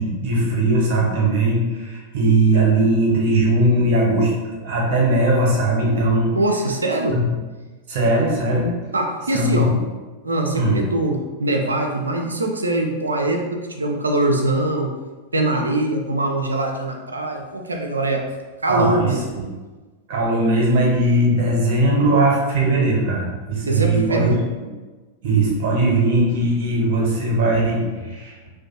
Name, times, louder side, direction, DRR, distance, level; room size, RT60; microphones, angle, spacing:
voice 1, 0.0-6.3 7.1-7.2 7.9-8.7 9.3-9.8 10.5-10.8 18.7-19.1 19.4-19.5 20.1-24.4 25.2-28.5, right 2 dB, 50° right, -3 dB, 0.8 m, -19 dB
voice 2, 6.3-7.2 8.9-9.7 10.2-14.9 15.3-18.2 18.6-19.2 23.7-24.5, right 2 dB, 75° right, 2 dB, 0.3 m, -22 dB
2.5 x 2.2 x 2.5 m, 1.3 s
figure-of-eight pair, 90°, 0 cm